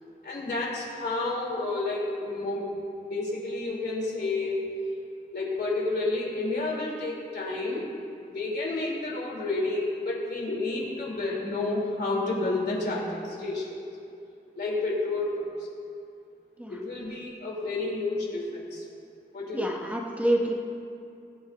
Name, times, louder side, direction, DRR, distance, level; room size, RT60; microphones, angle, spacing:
voice 1, 0.2-2.7 3.1-4.8 5.3-7.8 8.3-13.8 14.6-15.5 16.7-18.8 19.3-19.8, left 2 dB, 75° left, -4 dB, 3.0 m, -30 dB
voice 2, 19.5-20.5, right 1 dB, 10° right, 0 dB, 0.9 m, -27 dB
21.5 x 8.7 x 2.6 m, 2.5 s
wide cardioid pair, 150°, 17 cm